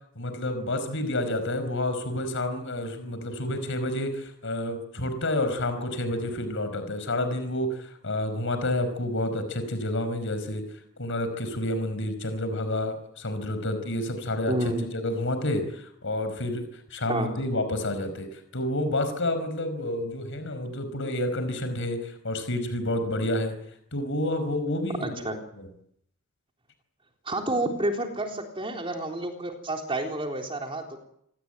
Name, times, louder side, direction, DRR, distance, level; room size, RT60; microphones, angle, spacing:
voice 1, 0.1-10.6 11.0-14.5 14.9-23.5 23.9-25.2 25.6-25.7, left 1 dB, 60° left, 9 dB, 5.2 m, -29 dB
voice 2, 14.5-14.9 17.1-17.3 25.0-25.4 27.3-31.0, right 1 dB, 25° right, 2 dB, 3.8 m, -30 dB
27.5 x 19.0 x 9.1 m, 0.73 s
head